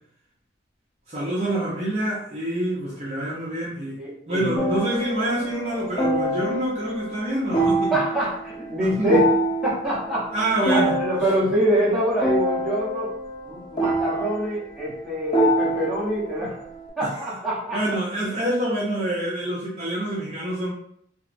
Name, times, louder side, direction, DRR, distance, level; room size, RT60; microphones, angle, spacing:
voice 1, 1.1-4.0 4.3-7.9 8.8-9.2 10.3-11.0 17.0-17.2 17.7-20.7, right 1 dB, 35° right, -6 dB, 0.5 m, -26 dB
voice 2, 4.0-4.6 7.9-9.3 9.6-13.1 13.4-16.6 17.0-17.8, right 1 dB, ahead, -9 dB, 0.8 m, -25 dB
sound 1, 4.6-16.9, right 1 dB, 20° left, 0.4 m, -26 dB
2.8 x 2.1 x 2.5 m, 0.68 s
head